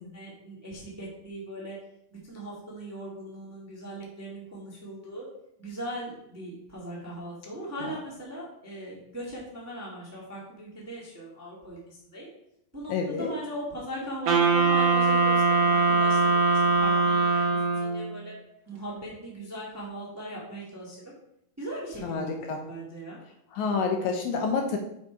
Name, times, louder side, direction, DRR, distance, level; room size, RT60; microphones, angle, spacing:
voice 1, 0.0-1.8 2.1-5.2 5.6-12.3 12.7-18.4 18.7-21.1 21.6-23.2, right 1 dB, 10° right, -5 dB, 1.0 m, -39 dB
voice 2, 12.9-13.3 22.0-22.6 23.5-24.8, left 5 dB, 75° left, 3 dB, 1.9 m, -29 dB
Wind instrument woodwind instrument, 14.3-18.1, right 3 dB, 55° right, 2.0 m, -22 dB
7.0 x 5.0 x 4.5 m, 0.78 s
omnidirectional pair, 3.8 m